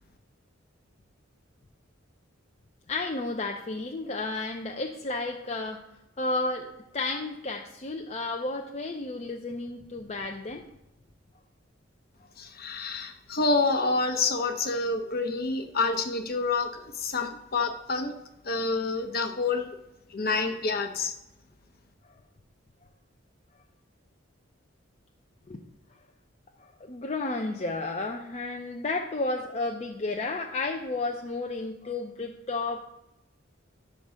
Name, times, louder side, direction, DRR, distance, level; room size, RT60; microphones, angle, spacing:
voice 1, 2.9-5.8 6.2-10.6 25.5-25.6 26.6-32.9, left 3 dB, 35° left, 2 dB, 0.6 m, -32 dB
voice 2, 12.4-18.1 18.4-19.7 20.1-21.1, left 3 dB, 50° left, 6 dB, 1.0 m, -28 dB
10.5 x 3.9 x 6.4 m, 0.91 s
head